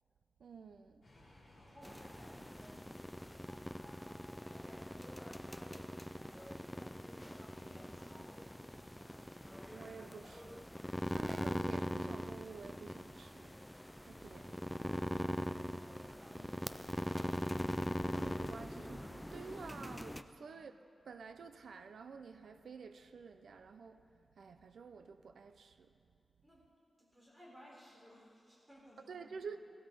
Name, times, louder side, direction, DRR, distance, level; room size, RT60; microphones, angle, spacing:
voice 1, 0.4-1.0 9.7-13.6 14.0-14.6 18.2-20.8 21.0-25.9 29.1-29.6, right 5 dB, 90° right, 0.6 m, -51 dB
sound 1, 1.0-6.7, left 1 dB, 50° left, 4.6 m, -64 dB
voice 2, 1.5-5.0 5.5-7.2 7.5-9.4 20.4-20.6 26.4-26.7 27.0-29.3, equal, 10° right, 4.1 m, -62 dB
sound 2, 1.8-20.2, equal, 5° left, 0.4 m, -42 dB
16.0 x 12.5 x 5.3 m
wide cardioid pair, 155°, 0 cm